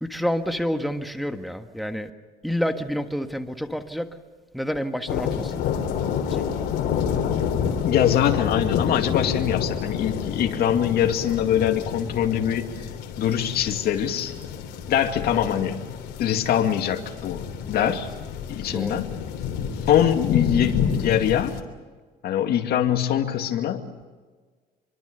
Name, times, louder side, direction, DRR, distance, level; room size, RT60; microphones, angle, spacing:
voice 1, 0.0-2.1 2.4-4.1 4.5-5.5 6.3-6.4 17.8-18.0 18.7-19.0, equal, ahead, 6 dB, 1.5 m, -28 dB
sound 1, 5.1-21.6, left 7 dB, 85° left, 3.2 m, -29 dB
voice 2, 7.8-12.7 13.2-14.3 14.9-15.8 16.2-18.1 18.5-19.2 19.9-21.5 22.2-23.8, left 10 dB, 65° left, 5 dB, 2.3 m, -23 dB
25.5 x 23.5 x 6.8 m, 1.4 s
cardioid pair, 110°, 17 cm